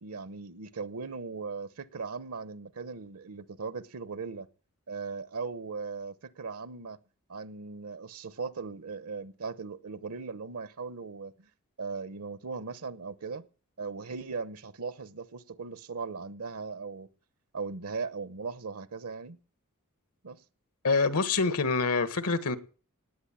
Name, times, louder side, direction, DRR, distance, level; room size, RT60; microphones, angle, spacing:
voice 1, 0.0-4.5 4.9-7.0 7.3-11.5 11.8-13.4 13.8-17.1 17.5-19.4 20.2-20.4, right 4 dB, 80° right, 0.9 m, -38 dB
voice 2, 20.8-22.6, left 4 dB, 85° left, 1.6 m, -26 dB
19.0 x 8.4 x 8.8 m
head